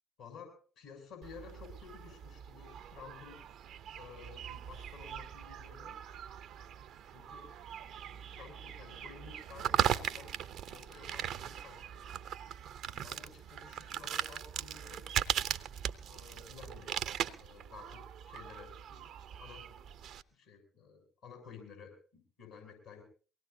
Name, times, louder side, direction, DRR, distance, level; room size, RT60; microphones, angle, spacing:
voice 1, 0.2-3.4 4.0-6.0 7.1-7.5 7.8-10.4 10.7-12.0 12.9-15.3 16.1-16.9 17.3-19.1 19.4-23.0, left 6 dB, 75° left, 1 dB, 6.9 m, -53 dB
sound 1, 1.2-20.2, right 9 dB, 65° right, 0.7 m, -39 dB
23.5 x 18.5 x 2.7 m, 0.38 s
hypercardioid pair, 45°, 0 cm